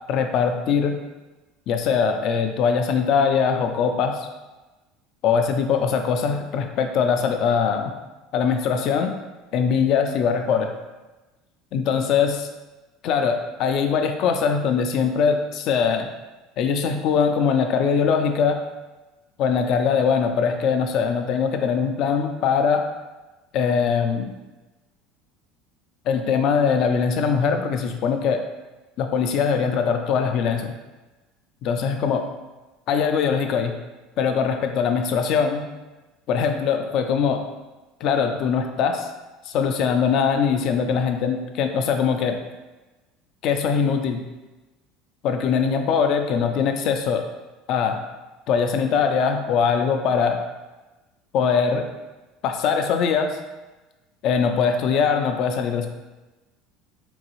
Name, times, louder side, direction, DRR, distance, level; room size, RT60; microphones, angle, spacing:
voice 1, 0.1-1.0 1.7-4.3 5.2-7.9 8.3-9.2 9.5-10.7 11.7-12.5 13.0-16.1 16.6-18.6 19.4-22.9 23.5-24.3 26.1-28.4 29.0-30.7 31.6-32.3 32.9-33.7 34.2-35.7 36.3-37.4 38.0-39.1 39.4-42.4 43.4-44.2 45.2-47.2 47.7-48.0 48.5-50.4 51.3-51.9 52.4-53.4 54.2-55.9, left 6 dB, 55° left, 6 dB, 0.4 m, -22 dB
3.9 x 2.7 x 2.9 m, 1.1 s
supercardioid pair, 110°, 0 cm